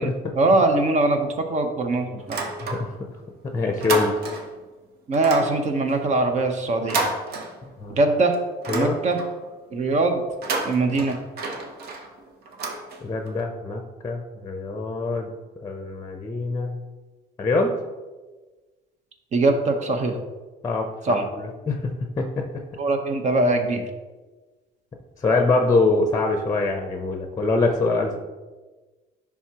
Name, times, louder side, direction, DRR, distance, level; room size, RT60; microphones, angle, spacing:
voice 1, 0.0-2.4 5.1-7.0 7.9-8.4 8.7-9.2 9.7-10.2 10.6-11.2 19.3-20.1 21.0-21.2 22.8-23.8, right 2 dB, 45° right, 6 dB, 0.9 m, -22 dB
sound 1, 2.2-3.2 3.5-4.6 5.1-8.0 8.3-9.5 10.3-13.4, right 3 dB, 70° right, 0.9 m, -31 dB
voice 2, 2.6-2.9 3.5-4.1 7.8-7.9 8.7-9.0 13.0-15.3 15.6-16.8 17.4-17.8 20.6-22.5 25.2-28.2, left 3 dB, 20° left, 4 dB, 0.7 m, -24 dB
10.5 x 3.6 x 2.9 m, 1.3 s
cardioid pair, 110°, 17 cm